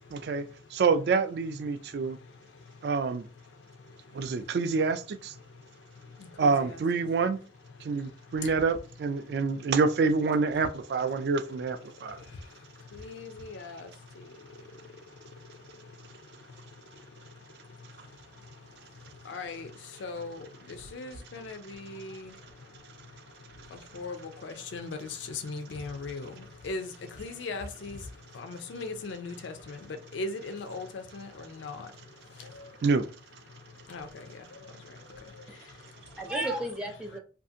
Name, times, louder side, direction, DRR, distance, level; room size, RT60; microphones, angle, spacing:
voice 1, 0.1-0.4 0.7-2.2 2.8-3.3 4.1-5.3 6.4-7.4 7.8-12.2 32.8-33.1, right 4 dB, 60° right, 0.3 m, -27 dB
voice 2, 6.4-6.8 12.9-13.9 19.3-19.7 20.0-20.5 20.9-22.3 23.9-26.3 26.6-26.9 27.2-28.0 28.3-29.8 30.1-31.9 33.9-34.3, left 3 dB, 90° left, 0.4 m, -38 dB
voice 3, 35.5-37.2, right 1 dB, 5° right, 0.5 m, -35 dB
2.6 x 2.4 x 2.6 m
head